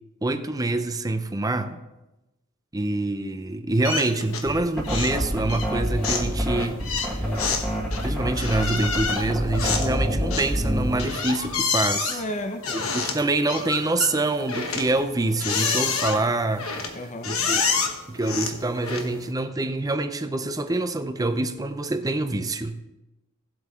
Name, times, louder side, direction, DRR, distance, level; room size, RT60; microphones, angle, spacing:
voice 1, 0.2-1.8 2.7-7.1 8.0-12.2 12.7-16.7 17.2-17.6 18.1-22.8, right 2 dB, 15° right, 0.6 m, -26 dB
sound 1, 3.8-4.6 4.8-5.2 5.5-19.3, left 5 dB, 90° left, 1.3 m, -29 dB
sound 2, 4.5-11.1, equal, 5° left, 2.1 m, -27 dB
voice 2, 12.1-12.9 16.9-17.5, left 1 dB, 35° left, 0.7 m, -34 dB
16.5 x 8.1 x 3.7 m
head